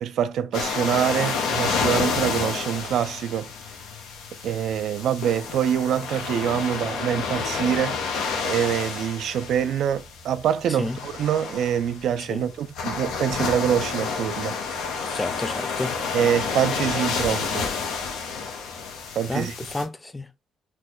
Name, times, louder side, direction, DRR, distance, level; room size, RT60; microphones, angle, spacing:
voice 1, 0.0-3.5 4.4-14.6 16.1-17.7 19.2-19.5, right 9 dB, 75° right, 0.3 m, -25 dB
sound 1, 0.5-19.8, left 5 dB, 90° left, 0.7 m, -30 dB
voice 2, 15.1-16.0 19.3-20.3, left 2 dB, 15° left, 0.4 m, -30 dB
3.0 x 2.2 x 3.6 m
cardioid pair, 90°, 0 cm